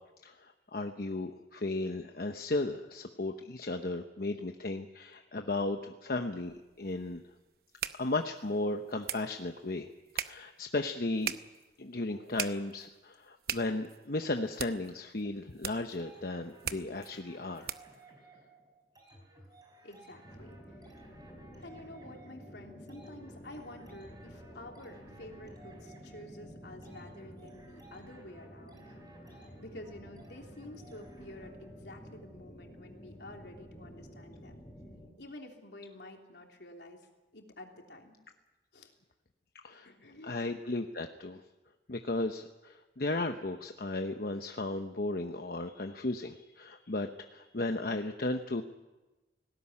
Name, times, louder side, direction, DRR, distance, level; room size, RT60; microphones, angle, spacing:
voice 1, 0.2-7.2 8.0-9.9 10.1-11.3 11.8-17.7 39.6-39.9 40.2-41.4 41.9-48.6, left 2 dB, 55° left, 5 dB, 1.0 m, -35 dB
sound 1, 6.4-18.0, right 9 dB, 60° right, 0.9 m, -42 dB
sound 2, 16.0-31.7, right 2 dB, 25° right, 4.5 m, -58 dB
voice 2, 19.8-20.9 21.6-29.0 29.2-34.6 35.2-37.0 37.3-38.2 38.7-38.9 39.8-40.4, left 1 dB, 75° left, 2 dB, 3.3 m, -50 dB
sound 3, 20.2-35.1, equal, 20° left, 7.6 m, -51 dB
19.0 x 17.5 x 9.8 m, 1.1 s
head